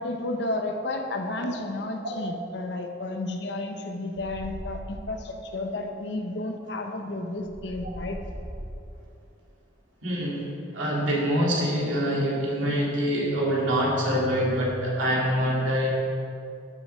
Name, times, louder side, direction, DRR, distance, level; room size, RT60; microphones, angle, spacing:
voice 1, 0.0-8.2, left 2 dB, 60° left, 4 dB, 0.8 m, -32 dB
sound 1, 4.1-5.2 7.4-9.0 13.1-14.8, equal, 15° right, 1.5 m, -40 dB
voice 2, 10.0-15.9, equal, 85° right, -4 dB, 2.4 m, -25 dB
12.5 x 7.0 x 3.4 m, 2.5 s
head